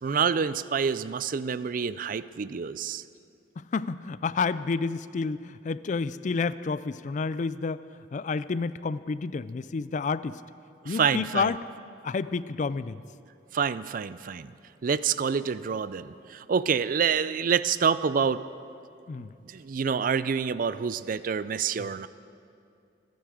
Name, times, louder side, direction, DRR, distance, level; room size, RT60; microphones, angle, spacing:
voice 1, 0.0-3.0 10.9-11.5 13.5-14.5 14.8-18.4 19.5-22.1, right 6 dB, 45° right, 15 dB, 0.4 m, -27 dB
voice 2, 3.6-7.8 8.1-10.4 10.8-11.6 12.0-13.0 19.1-19.3 21.8-21.9, left 4 dB, 40° left, 16 dB, 0.4 m, -30 dB
25.0 x 9.4 x 4.9 m, 2.6 s
head